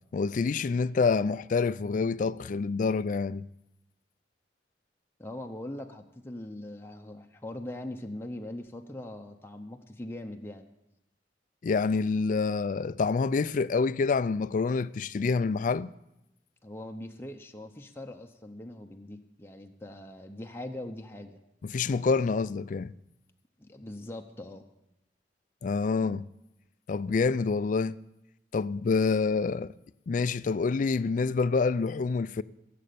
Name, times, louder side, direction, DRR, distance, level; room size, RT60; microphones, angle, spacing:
voice 1, 0.1-3.5 11.6-15.9 21.6-22.9 25.6-26.3 26.9-27.9 28.5-29.7 30.1-32.4, left 4 dB, 45° left, 0.3 m, -27 dB
voice 2, 5.2-10.7 16.6-21.4 23.6-24.6, left 1 dB, 15° left, 0.7 m, -41 dB
15.5 x 7.5 x 6.8 m
head